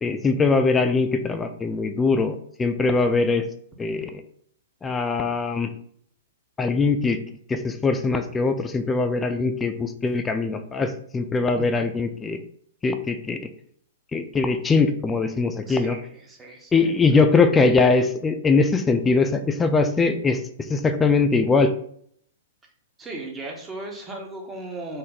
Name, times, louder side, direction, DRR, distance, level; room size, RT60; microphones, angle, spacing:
voice 1, 0.0-3.4 3.8-4.2 4.8-5.7 6.6-7.2 7.5-12.4 12.8-13.4 14.1-16.0 16.7-20.4 20.7-21.7, left 4 dB, 15° left, 8 dB, 0.3 m, -21 dB
voice 2, 15.7-16.9 23.0-25.0, right 2 dB, 15° right, 0 dB, 0.8 m, -37 dB
3.4 x 2.0 x 3.9 m, 0.66 s
figure-of-eight pair, 110°, 0 cm